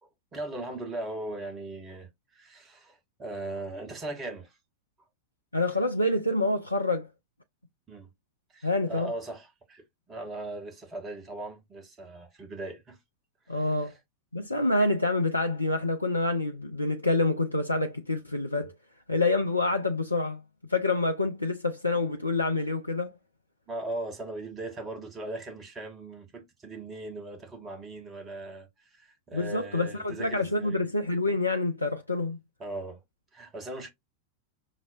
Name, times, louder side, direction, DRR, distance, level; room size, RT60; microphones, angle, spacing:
voice 1, 0.0-4.6 7.9-8.1 8.5-13.0 13.5-13.9 23.7-30.8 32.6-33.0 33.3-33.9, right 2 dB, 20° right, 1.0 m, -39 dB
voice 2, 5.5-7.1 8.6-9.1 13.5-13.9 14.3-18.7 19.1-20.4 20.7-23.1 29.3-32.4, left 2 dB, 85° left, 0.3 m, -27 dB
5.7 x 2.0 x 2.4 m
figure-of-eight pair, 90°, 0 cm